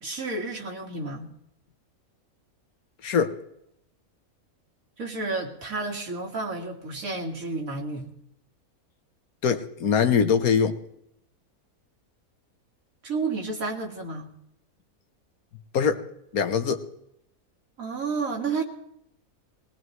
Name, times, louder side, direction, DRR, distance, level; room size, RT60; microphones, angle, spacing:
voice 1, 0.0-1.3 5.0-8.1 13.0-14.3 17.8-18.6, right 3 dB, 70° right, 1 dB, 2.5 m, -31 dB
voice 2, 3.0-3.4 9.4-10.8 15.7-16.0 16.3-16.9, left 6 dB, 75° left, 8 dB, 1.5 m, -23 dB
20.5 x 19.5 x 3.2 m, 0.75 s
omnidirectional pair, 1.5 m